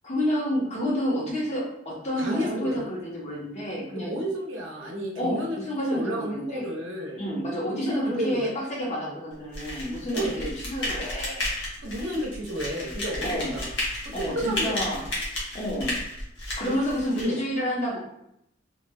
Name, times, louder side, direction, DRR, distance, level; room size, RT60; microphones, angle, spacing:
voice 1, 0.0-4.2 5.2-6.7 7.2-11.5 13.2-13.5 14.1-15.0 15.5-16.0 16.6-18.0, equal, 35° left, -4 dB, 0.9 m, -29 dB
voice 2, 2.2-2.8 4.0-5.6 5.9-7.2 7.8-8.5 9.1-9.2 10.1-10.4 11.8-13.7 14.2-15.1 16.6-17.4, right 1 dB, 80° right, -1 dB, 0.7 m, -32 dB
sound 1, 9.5-17.3, left 1 dB, 65° left, 1.0 m, -33 dB
3.0 x 2.5 x 2.2 m, 0.77 s
head